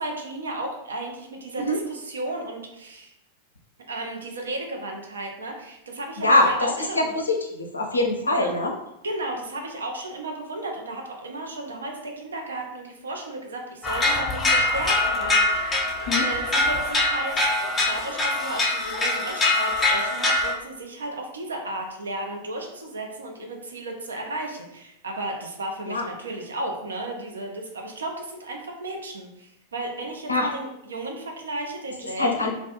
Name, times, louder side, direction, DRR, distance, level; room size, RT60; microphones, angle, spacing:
voice 1, 0.0-3.1 3.9-7.1 8.3-8.5 9.0-17.4 17.9-32.5, right 2 dB, 70° right, 2 dB, 0.4 m, -34 dB
voice 2, 7.5-8.7 16.1-16.2 25.9-26.0 30.3-30.5 32.2-32.5, left 1 dB, 80° left, 1 dB, 0.4 m, -22 dB
sound 1, 13.8-20.5, left 2 dB, 15° left, 0.4 m, -23 dB
2.3 x 2.0 x 2.8 m, 0.86 s
figure-of-eight pair, 90°, 0 cm